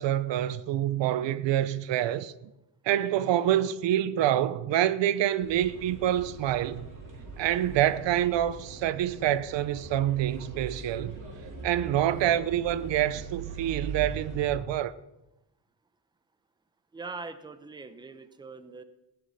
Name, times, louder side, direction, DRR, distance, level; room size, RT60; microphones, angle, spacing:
voice 1, 0.0-2.3 2.8-6.9 7.4-11.2 11.6-14.9, right 11 dB, 80° right, 0.8 m, -26 dB
sound 1, 5.4-14.5, right 4 dB, 45° right, 3.3 m, -41 dB
voice 2, 16.9-18.8, right 4 dB, 10° right, 0.7 m, -42 dB
16.0 x 10.5 x 5.7 m
cardioid pair, 180°, 43 cm